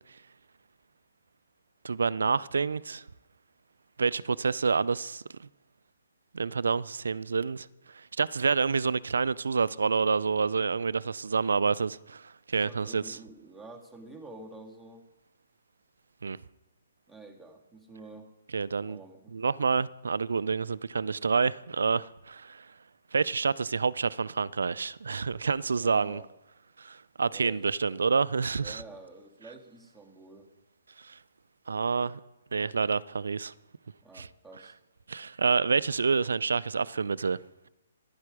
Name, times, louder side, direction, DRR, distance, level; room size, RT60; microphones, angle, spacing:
voice 1, 1.8-3.0 4.0-5.2 6.3-7.7 8.2-13.2 16.2-16.4 18.5-19.0 19.3-22.7 23.1-26.2 26.8-28.8 31.0-31.2 31.7-32.2 32.5-33.5 34.1-34.3 35.1-37.4, right 5 dB, 80° right, 0.4 m, -28 dB
voice 2, 12.6-15.0 17.1-18.3 18.9-19.3 25.7-26.3 27.3-27.7 28.5-30.5 34.0-34.7, right 2 dB, 5° right, 1.7 m, -48 dB
11.0 x 10.5 x 4.9 m
hypercardioid pair, 145°, 0 cm